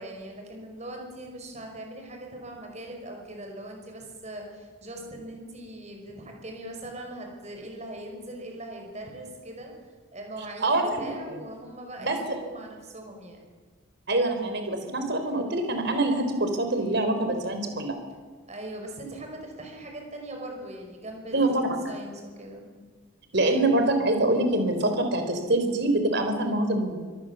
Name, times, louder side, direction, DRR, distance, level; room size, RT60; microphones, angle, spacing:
voice 1, 0.0-9.7 10.1-13.4 18.5-22.8, right 1 dB, 30° right, 2 dB, 5.4 m, -40 dB
voice 2, 10.6-11.4 12.0-12.2 14.1-18.0 21.3-21.7 23.3-27.1, right 2 dB, 50° right, 6 dB, 3.9 m, -25 dB
25.5 x 18.5 x 7.3 m, 1.5 s
head